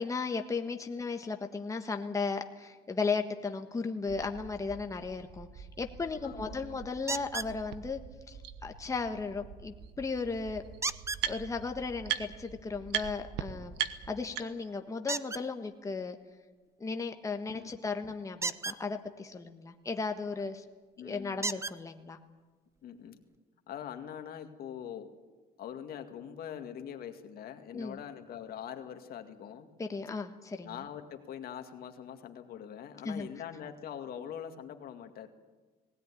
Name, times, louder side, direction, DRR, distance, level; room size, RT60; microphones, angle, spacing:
voice 1, 0.0-8.0 8.3-10.6 11.3-13.8 14.1-16.2 16.8-20.6 21.0-22.2 27.7-28.0 29.8-30.8 33.0-33.3, left 4 dB, 20° left, 5 dB, 1.3 m, -35 dB
sound 1, 4.1-14.2, right 5 dB, 50° right, 1.7 m, -50 dB
voice 2, 6.2-6.8 17.5-17.9 21.0-21.5 22.8-23.2 23.7-25.1 25.6-29.7 30.6-35.3, left 9 dB, 65° left, 6 dB, 2.1 m, -43 dB
sound 2, 7.1-7.5 10.8-11.2 15.1-15.4 18.3-18.8 20.5-20.6 21.4-21.8 22.8-22.9 23.3-23.4, right 3 dB, 15° right, 0.7 m, -34 dB
sound 3, 7.7-7.8 8.4-8.5 9.8-9.9 10.2-11.7 12.0-12.5 12.9-13.1 13.4-13.5 13.8-14.8, right 12 dB, 85° right, 1.3 m, -35 dB
19.5 x 17.5 x 9.9 m, 1.3 s
cardioid pair, 110°, 17 cm